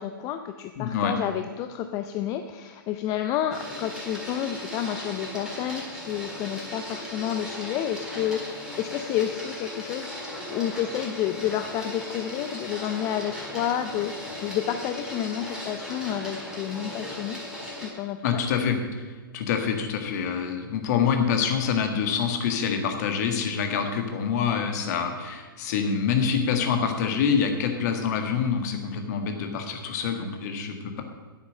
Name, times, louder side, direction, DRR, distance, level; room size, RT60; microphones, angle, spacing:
voice 1, 0.0-10.1 10.5-17.4 17.8-18.4, left 10 dB, 30° left, 8 dB, 0.6 m, -30 dB
voice 2, 0.8-1.1 18.2-31.0, left 6 dB, 45° left, 5 dB, 1.8 m, -26 dB
Printer, 3.5-17.9, left 1 dB, ahead, 4.1 m, -37 dB
10.0 x 8.1 x 6.5 m, 1.4 s
hypercardioid pair, 120°, 12 cm